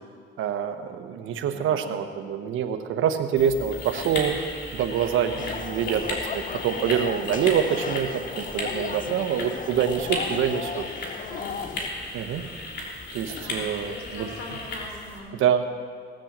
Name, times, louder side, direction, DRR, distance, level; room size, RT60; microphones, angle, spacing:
voice 1, 0.4-4.4 4.7-6.0 6.3-10.8 12.1-12.5 13.1-14.3 15.3-15.8, right 8 dB, 80° right, 7 dB, 1.1 m, -26 dB
voice 2, 1.4-1.9 6.2-6.6 9.8-11.7 13.3-15.4, left 2 dB, 85° left, 0 dB, 3.5 m, -43 dB
sound 1, 3.4-15.2, left 2 dB, 60° left, 3.4 m, -35 dB
sound 2, 5.4-11.9, left 7 dB, 40° left, 0.6 m, -35 dB
18.0 x 7.8 x 7.4 m, 2.1 s
cardioid pair, 90°, 20 cm